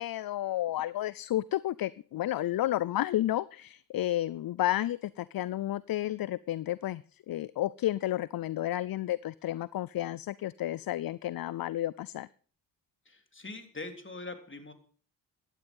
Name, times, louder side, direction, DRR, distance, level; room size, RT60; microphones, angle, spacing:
voice 1, 0.0-12.3, left 14 dB, 55° left, 20 dB, 0.5 m, -31 dB
voice 2, 13.1-14.7, left 3 dB, 25° left, 6 dB, 3.5 m, -42 dB
15.5 x 10.5 x 5.5 m, 0.43 s
supercardioid pair, 50°, 44 cm